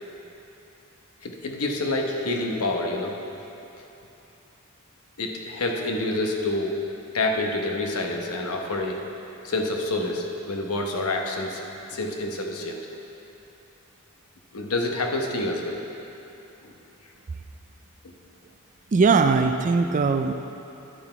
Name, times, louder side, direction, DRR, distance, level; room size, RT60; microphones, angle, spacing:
voice 1, 1.2-3.2 5.2-6.7 7.1-9.0 9.4-11.6 11.9-12.9 14.5-15.8 16.6-16.7, left 2 dB, 75° left, 1 dB, 0.9 m, -27 dB
voice 2, 18.9-20.3, right 4 dB, 35° right, 8 dB, 0.3 m, -20 dB
11.0 x 6.0 x 4.4 m, 3.0 s
head